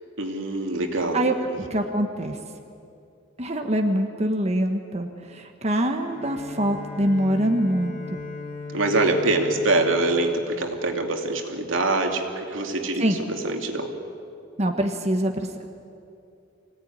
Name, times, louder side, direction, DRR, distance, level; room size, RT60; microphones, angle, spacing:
voice 1, 0.2-1.3 8.7-13.9, right 2 dB, 85° right, 3 dB, 2.7 m, -24 dB
voice 2, 1.1-2.4 3.4-8.2 13.0-13.2 14.6-15.7, right 1 dB, 35° right, 4 dB, 1.4 m, -24 dB
Bowed string instrument, 6.0-11.2, left 3 dB, 45° left, 3.9 m, -38 dB
24.5 x 17.5 x 9.7 m, 2.6 s
head